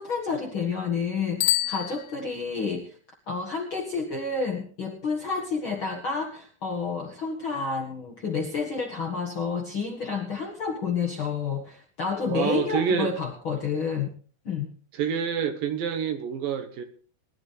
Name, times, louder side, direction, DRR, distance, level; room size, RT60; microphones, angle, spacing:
voice 1, 0.0-3.0 3.3-14.1 14.4-14.7, left 5 dB, 50° left, 1.5 m, -30 dB
Bicycle bell, 1.4-2.7, left 16 dB, 75° left, 2.8 m, -28 dB
voice 2, 12.3-13.1 14.9-16.8, right 7 dB, 70° right, 2.8 m, -27 dB
21.0 x 11.5 x 3.3 m
omnidirectional pair, 4.5 m